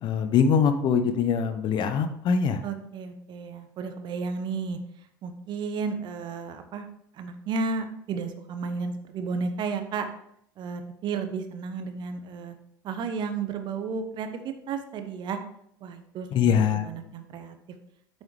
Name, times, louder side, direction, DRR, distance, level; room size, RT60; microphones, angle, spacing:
voice 1, 0.0-2.6 16.3-16.9, left 6 dB, 45° left, 9 dB, 0.8 m, -23 dB
voice 2, 2.6-4.8 5.2-6.9 7.1-10.1 10.6-12.5 12.8-15.4 15.8-17.6, right 5 dB, 45° right, 8 dB, 1.0 m, -33 dB
8.7 x 6.5 x 3.2 m, 0.72 s
figure-of-eight pair, 65°, 11 cm